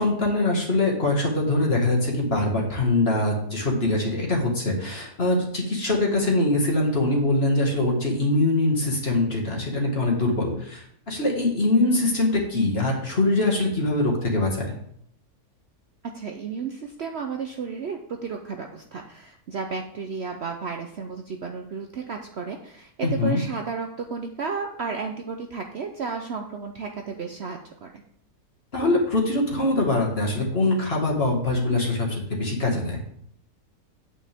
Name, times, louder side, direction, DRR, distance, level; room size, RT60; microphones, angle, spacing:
voice 1, 0.0-14.7 23.0-23.4 28.7-33.0, left 2 dB, 40° left, -1 dB, 2.1 m, -23 dB
voice 2, 16.1-28.0, right 5 dB, 55° right, 4 dB, 0.8 m, -33 dB
8.7 x 8.6 x 3.5 m, 0.68 s
omnidirectional pair, 1.6 m